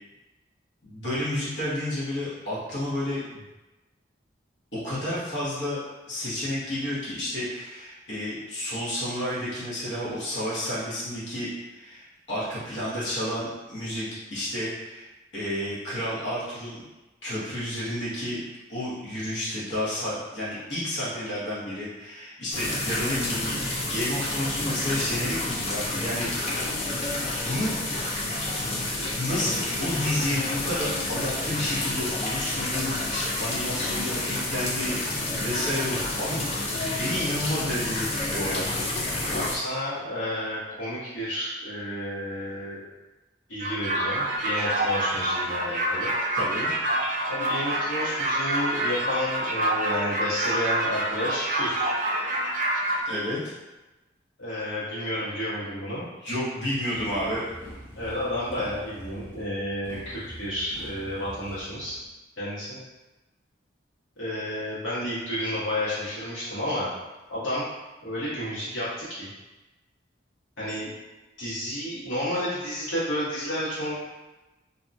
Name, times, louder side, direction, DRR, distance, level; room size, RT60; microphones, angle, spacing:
voice 1, 0.8-3.4 4.7-5.8 6.1-15.1 15.3-16.8 17.2-18.4 18.7-23.6 23.9-26.8 27.4-27.7 29.1-35.0 35.4-36.5 36.9-38.7 46.4-46.7 53.0-53.4 56.2-57.5, left 1 dB, 70° left, -9 dB, 1.0 m, -31 dB
sound 1, 22.5-39.6, left 2 dB, 30° left, 0.3 m, -29 dB
voice 2, 39.3-42.8 43.5-46.1 47.3-51.9 54.4-56.0 57.9-62.0 62.4-62.8 64.2-66.9 67.3-67.7 68.0-69.3 70.6-70.9 71.4-74.0, left 1 dB, 85° left, -10 dB, 1.4 m, -31 dB
sound 2, 43.6-53.0, right 1 dB, 40° right, 0.3 m, -27 dB
Motorcycle, 56.9-62.1, equal, 15° left, 0.9 m, -44 dB
2.7 x 2.3 x 2.6 m, 1.1 s
head